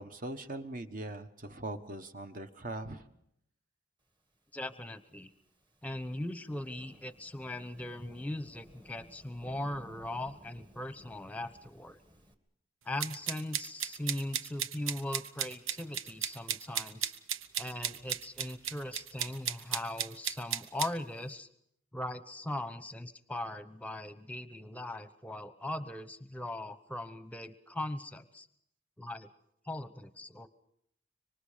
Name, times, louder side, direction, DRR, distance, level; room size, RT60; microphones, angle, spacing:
voice 1, 0.0-3.0, right 2 dB, 45° right, 8 dB, 1.2 m, -41 dB
voice 2, 4.5-5.3 5.8-12.0 12.8-17.1 17.6-21.5 21.9-28.5 29.0-29.3 29.6-30.5, left 1 dB, 5° left, 12 dB, 0.9 m, -39 dB
Thunderstorm / Rain, 4.6-12.3, equal, 25° right, 1.6 m, -58 dB
sound 1, 13.0-20.9, right 9 dB, 90° right, 0.8 m, -35 dB
25.5 x 24.5 x 5.1 m, 0.73 s
head